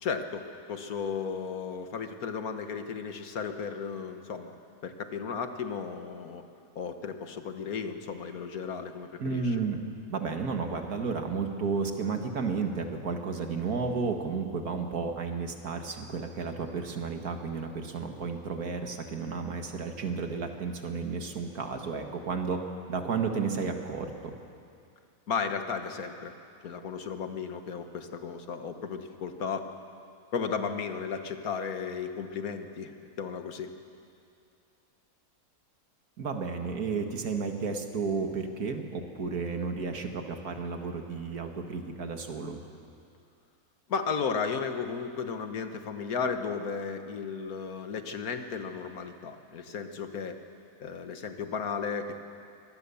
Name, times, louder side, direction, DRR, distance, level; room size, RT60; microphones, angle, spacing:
voice 1, 0.0-6.4 6.7-9.6 25.3-26.3 26.6-29.7 30.3-33.7 43.9-50.4 50.8-52.2, left 6 dB, 75° left, 7 dB, 1.7 m, -34 dB
voice 2, 9.2-9.8 10.1-22.6 22.9-24.3 36.2-42.6, right 5 dB, 80° right, 4 dB, 2.1 m, -32 dB
24.0 x 18.5 x 7.0 m, 2.5 s
omnidirectional pair, 1.6 m